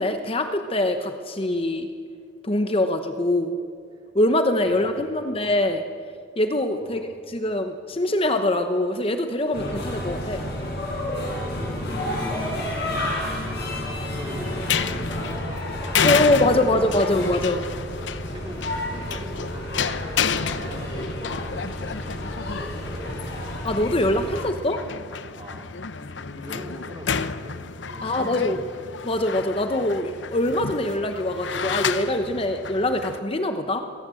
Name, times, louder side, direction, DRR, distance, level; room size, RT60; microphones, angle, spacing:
voice 1, 0.0-1.9 2.4-3.6 4.1-5.8 6.4-7.0 7.3-10.5 16.0-17.6 23.6-24.8 28.0-28.6 29.0-33.8, left 1 dB, 30° left, 7 dB, 1.0 m, -23 dB
voice 2, 4.6-5.3 6.8-7.2 11.2-12.8 13.3-16.8 17.5-17.7 18.3-22.2 22.6-23.4 25.4-28.8, equal, 25° right, 1 dB, 3.6 m, -42 dB
sound 1, 9.5-24.4, left 1 dB, 60° left, 6.7 m, -31 dB
sound 2, 14.5-33.2, left 6 dB, 75° left, 0.8 m, -30 dB
21.5 x 18.0 x 7.7 m, 2.2 s
head